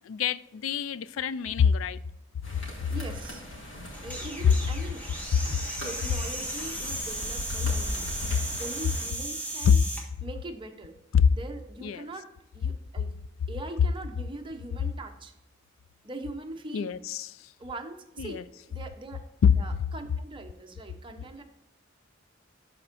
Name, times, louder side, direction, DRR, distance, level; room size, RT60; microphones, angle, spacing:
voice 1, 0.1-2.0 9.6-9.8 11.1-11.3 11.8-12.0 16.7-17.3 18.2-18.4 19.4-19.5, left 7 dB, 90° left, 0.3 m, -24 dB
sound 1, 2.4-9.1, equal, 75° left, 2.4 m, -41 dB
voice 2, 2.6-3.5 4.0-5.0 5.4-9.8 10.2-10.9 11.3-12.3 12.5-13.1 13.5-15.3 16.0-17.0 17.6-19.2 19.6-21.4, right 2 dB, 25° right, 0.8 m, -42 dB
sound 2, 3.9-10.1, right 1 dB, 10° left, 1.5 m, -36 dB
11.5 x 4.4 x 2.6 m
head